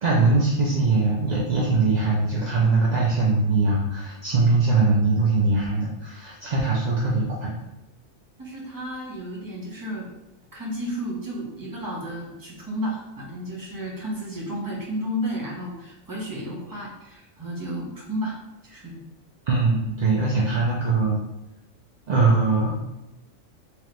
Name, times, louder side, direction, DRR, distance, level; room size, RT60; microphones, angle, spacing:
voice 1, 0.0-7.5 19.5-21.2 22.1-22.7, right 3 dB, 55° right, -4 dB, 0.5 m, -21 dB
voice 2, 8.4-10.1 10.5-18.3 18.6-19.0, equal, 20° right, -4 dB, 0.8 m, -32 dB
3.7 x 3.0 x 3.2 m, 0.95 s
omnidirectional pair, 1.4 m